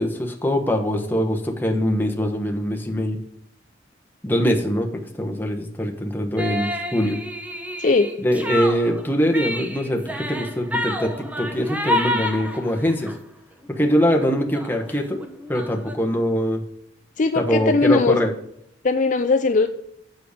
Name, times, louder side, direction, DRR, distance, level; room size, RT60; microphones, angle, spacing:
voice 1, 0.0-3.2 4.2-7.2 8.2-13.1 13.7-16.6 17.3-18.3, equal, 10° left, 2 dB, 1.1 m, -23 dB
sound 1, 6.4-13.2 13.6-13.9 14.2-14.3 14.5-15.9, left 1 dB, 10° right, 0.8 m, -29 dB
voice 2, 17.2-18.2 18.8-19.7, left 3 dB, 40° left, 8 dB, 0.4 m, -19 dB
7.8 x 6.6 x 5.0 m, 0.73 s
head